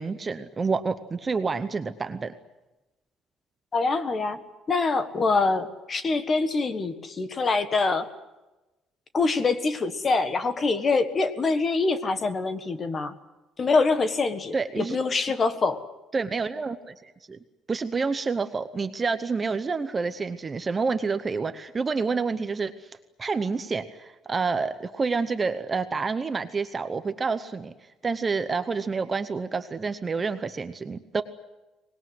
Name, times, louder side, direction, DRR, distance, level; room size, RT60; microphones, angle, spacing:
voice 1, 0.0-2.3 14.5-15.0 16.1-17.4 17.7-22.7 23.2-27.7 28.0-31.2, right 4 dB, 20° right, 10 dB, 0.8 m, -28 dB
voice 2, 3.7-4.4 4.7-8.1 9.1-13.1 13.6-15.8, left 3 dB, 25° left, 10 dB, 1.5 m, -25 dB
25.0 x 20.0 x 9.4 m, 1.1 s
cardioid pair, 175°, 0 cm